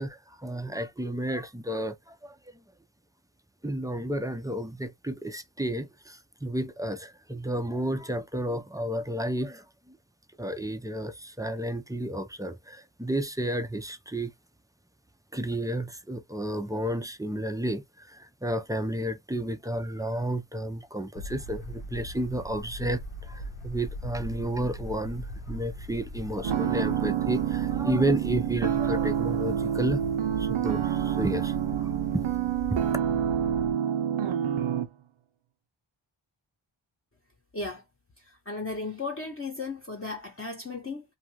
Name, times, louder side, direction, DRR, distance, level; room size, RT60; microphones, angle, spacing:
voice 1, 0.0-2.4 3.6-10.0 10.4-14.3 15.3-30.0 30.4-32.3 32.7-32.8, right 1 dB, 10° right, 0.4 m, -32 dB
sound 1, 21.1-33.7, equal, 85° left, 0.9 m, -39 dB
sound 2, 26.4-34.9, right 10 dB, 70° right, 0.7 m, -28 dB
voice 2, 37.5-37.8 38.2-41.0, left 3 dB, 25° left, 0.8 m, -35 dB
2.7 x 2.4 x 2.9 m
wide cardioid pair, 75°, 50 cm